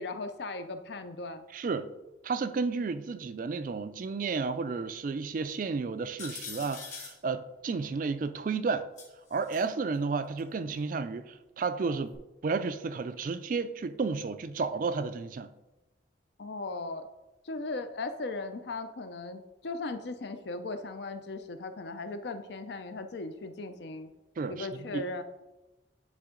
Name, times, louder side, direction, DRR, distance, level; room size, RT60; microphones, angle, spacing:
voice 1, 0.0-1.4 16.4-17.0 17.4-24.1 24.5-25.2, left 3 dB, 60° left, 0.5 m, -37 dB
voice 2, 1.5-1.9 2.2-8.9 9.3-12.1 12.4-15.5 24.4-25.0, right 4 dB, 45° right, 0.3 m, -32 dB
sound 1, 6.2-7.2 9.0-9.6 10.4-10.5 12.1-12.2, left 5 dB, 40° left, 1.7 m, -43 dB
9.8 x 3.4 x 3.7 m
head